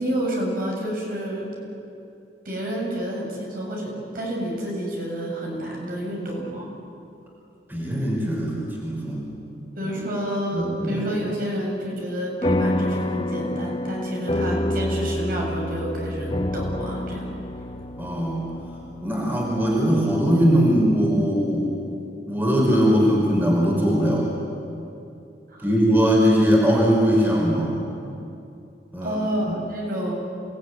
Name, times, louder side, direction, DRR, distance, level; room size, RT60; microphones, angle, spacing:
voice 1, 0.0-1.5 2.4-6.7 9.8-17.3 25.5-25.7 29.0-30.1, equal, 55° right, -2 dB, 7.3 m, -29 dB
voice 2, 7.7-9.2 9.8-9.9 10.5-11.0 18.0-18.5 19.0-21.7 22.3-24.3 25.6-27.7 28.9-29.2 29.5-29.6, equal, 10° right, -2 dB, 5.0 m, -20 dB
sound 1, 12.4-21.2, left 1 dB, 30° left, 0.9 m, -28 dB
28.0 x 19.5 x 9.6 m, 2.7 s
head